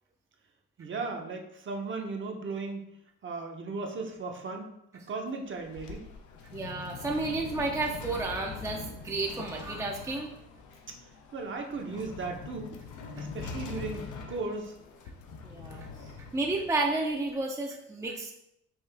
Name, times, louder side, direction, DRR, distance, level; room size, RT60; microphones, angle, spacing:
voice 1, 0.8-2.8 3.2-4.7 5.1-6.1 10.9-11.0 11.3-12.8 13.2-14.8, right 3 dB, 40° right, 2 dB, 0.8 m, -36 dB
sound 1, 5.4-17.3, left 5 dB, 80° left, 0.7 m, -43 dB
voice 2, 6.5-10.3 15.4-18.3, right 2 dB, 10° right, 1 dB, 0.5 m, -32 dB
5.5 x 2.4 x 3.3 m, 0.80 s
cardioid pair, 90°, 30 cm